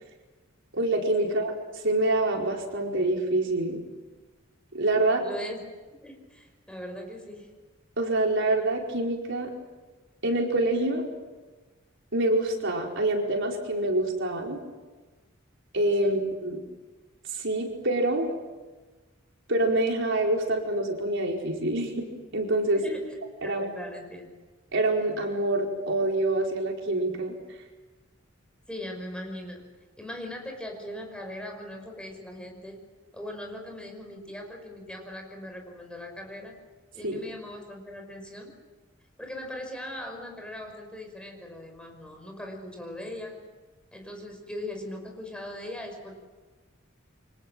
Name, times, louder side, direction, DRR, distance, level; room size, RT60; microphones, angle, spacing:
voice 1, 0.7-1.6 1.8-3.8 4.7-5.2 8.0-9.5 10.2-11.0 12.1-14.6 15.7-16.6 17.3-18.3 19.5-22.0 22.3-22.8 23.4-23.7 24.7-27.3 37.0-37.2, right 2 dB, 65° right, 0 dB, 4.8 m, -26 dB
voice 2, 5.2-5.6 6.0-7.5 16.0-16.2 22.7-23.0 23.4-24.3 28.7-29.6 30.0-32.8 33.1-36.5 36.9-38.5 39.2-43.4 43.9-46.2, left 1 dB, 5° left, 3 dB, 5.7 m, -39 dB
29.0 x 25.5 x 7.7 m, 1.3 s
head